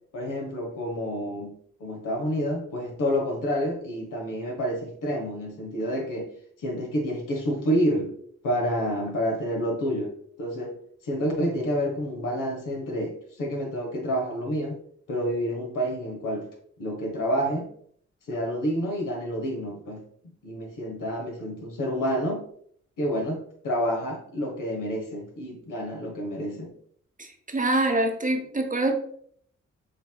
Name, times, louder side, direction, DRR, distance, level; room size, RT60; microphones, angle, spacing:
voice 1, 0.1-6.3 6.6-8.1 8.4-10.7 11.0-14.8 15.1-16.5 16.8-17.7 18.3-22.4 23.0-26.7, equal, 75° left, 0 dB, 1.2 m, -29 dB
voice 2, 27.2-29.0, right 2 dB, 25° right, 4 dB, 0.9 m, -25 dB
6.5 x 2.9 x 2.3 m, 0.62 s
supercardioid pair, 40°, 32 cm